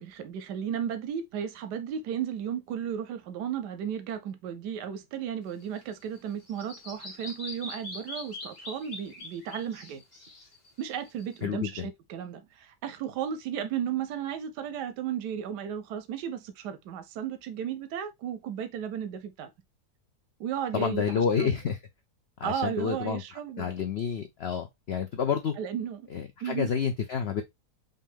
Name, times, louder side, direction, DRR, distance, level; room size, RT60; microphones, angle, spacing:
voice 1, 0.0-10.0 10.8-19.5 20.4-21.5 22.4-23.7 25.6-26.0 26.4-26.7, right 9 dB, 90° right, 1.2 m, -34 dB
Bird vocalization bird call bird song, 5.5-11.4, left 2 dB, 25° left, 1.5 m, -43 dB
voice 2, 11.4-11.9 20.7-21.8 22.4-23.2 23.6-25.6 26.1-27.4, left 7 dB, 70° left, 0.6 m, -29 dB
5.5 x 2.6 x 3.5 m
omnidirectional pair, 1.7 m